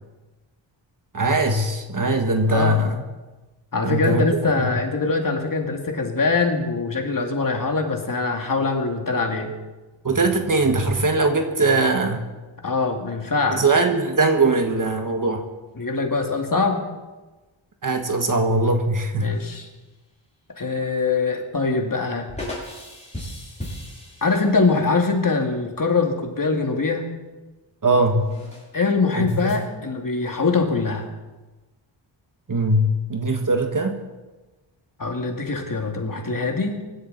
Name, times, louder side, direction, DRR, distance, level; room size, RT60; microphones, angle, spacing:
voice 1, 1.1-3.0 3.8-4.2 4.6-4.7 10.0-12.2 13.5-15.4 17.8-19.3 27.8-28.2 29.1-29.5 32.5-34.0, right 2 dB, 40° right, 5 dB, 1.7 m, -21 dB
voice 2, 2.5-2.8 3.7-9.5 12.6-13.6 15.8-16.8 19.2-19.7 20.6-22.3 24.2-27.1 28.7-31.1 35.0-36.9, left 4 dB, 45° left, 2 dB, 2.3 m, -23 dB
sound 1, 19.3-19.8 22.3-24.9 28.2-28.7 29.3-29.6, left 1 dB, 15° left, 6.8 m, -37 dB
24.0 x 12.5 x 4.1 m, 1.2 s
wide cardioid pair, 120°, 48 cm